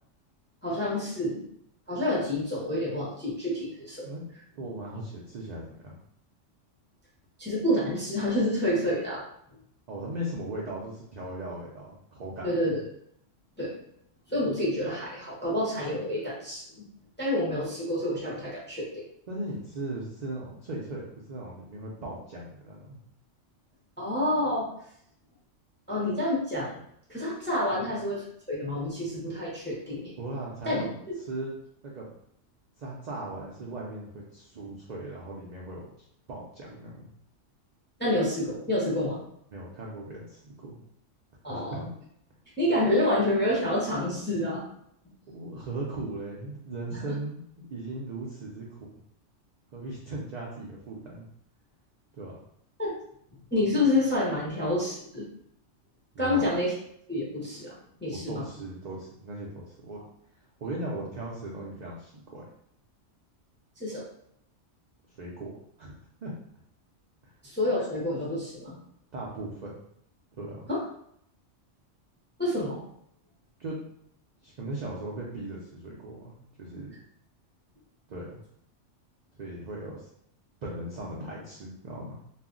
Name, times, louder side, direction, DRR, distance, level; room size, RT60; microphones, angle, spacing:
voice 1, 0.6-1.4 1.9-4.1 7.4-9.2 12.4-12.8 13.6-13.8 14.3-16.9 17.2-19.0 24.0-24.7 25.9-26.8 27.1-30.1 30.6-30.9 38.0-39.2 41.4-41.9 42.6-44.6 46.9-47.1 52.8-52.9 53.5-55.2 56.2-56.7 57.1-57.8 58.0-58.4 63.8-64.0 67.4-68.8 70.7-70.8 72.4-72.8, left 1 dB, 15° left, -5 dB, 0.5 m, -28 dB
voice 2, 4.5-6.0 9.9-12.7 19.3-23.0 27.7-27.9 30.2-31.5 31.8-32.1 32.8-35.9 36.3-37.1 39.5-40.8 41.5-41.9 45.3-48.9 49.7-51.3 52.2-52.3 56.1-56.5 58.3-60.0 60.6-62.4 65.1-65.5 65.8-66.3 67.2-67.3 69.1-69.7 70.4-70.7 73.6-73.8 74.4-76.9 78.1-78.4 79.4-80.1 80.6-82.2, right 2 dB, 65° right, -4 dB, 0.4 m, -38 dB
2.4 x 2.0 x 3.7 m, 0.71 s
omnidirectional pair, 1.3 m